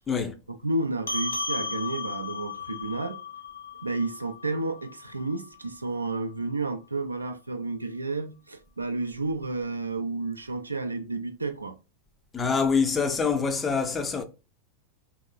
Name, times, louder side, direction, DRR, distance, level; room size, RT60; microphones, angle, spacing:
voice 1, 0.1-0.4 12.3-14.2, left 5 dB, 15° left, 0.4 m, -25 dB
voice 2, 0.6-3.2 3.8-11.8, right 2 dB, 80° right, 0.4 m, -31 dB
sound 1, 1.1-5.9, left 4 dB, 75° left, 0.6 m, -35 dB
3.1 x 2.9 x 2.2 m
figure-of-eight pair, 90°, 0 cm